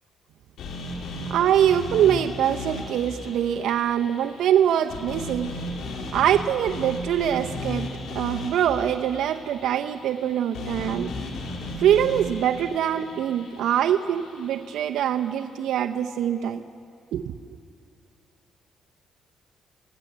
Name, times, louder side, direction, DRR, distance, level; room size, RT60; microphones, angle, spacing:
sound 1, 0.6-14.7, left 2 dB, 80° left, 3.8 m, -36 dB
voice 1, 1.3-5.5 6.1-7.9 8.1-11.1 11.8-16.6 17.1-17.3, right 10 dB, 80° right, 5 dB, 0.7 m, -23 dB
29.0 x 16.0 x 8.0 m, 2.4 s
cardioid pair, 90°, 0 cm